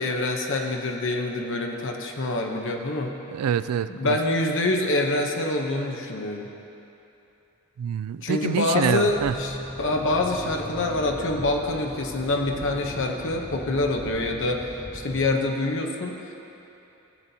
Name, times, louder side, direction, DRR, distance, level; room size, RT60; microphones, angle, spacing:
voice 1, 0.0-3.2 3.9-6.5 8.2-16.3, left 2 dB, 55° left, 2 dB, 0.9 m, -26 dB
voice 2, 3.3-4.2 7.8-9.4, right 8 dB, 80° right, 14 dB, 0.3 m, -26 dB
Accelerating revving vroom, 9.1-15.3, equal, ahead, 0.7 m, -39 dB
16.5 x 7.5 x 2.8 m, 2.9 s
head